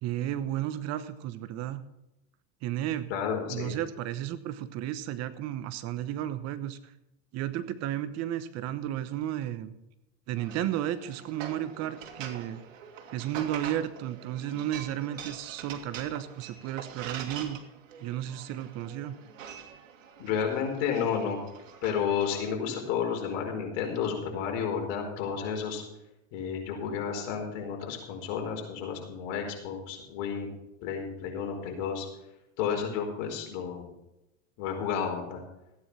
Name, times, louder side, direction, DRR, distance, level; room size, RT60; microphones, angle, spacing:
voice 1, 0.0-1.8 2.6-3.1 3.5-6.9 7.3-9.7 10.3-12.6 13.1-17.6 18.0-19.2, right 12 dB, 40° right, 13 dB, 1.0 m, -33 dB
voice 2, 3.1-3.8 20.2-21.4 21.8-25.8 26.3-30.5 30.8-32.1 32.6-33.9 34.6-35.4, left 7 dB, 55° left, 2 dB, 4.7 m, -31 dB
sound 1, 10.4-22.5, right 7 dB, 80° right, 2.2 m, -44 dB
15.5 x 9.6 x 5.6 m, 0.89 s
supercardioid pair, 120°, 38 cm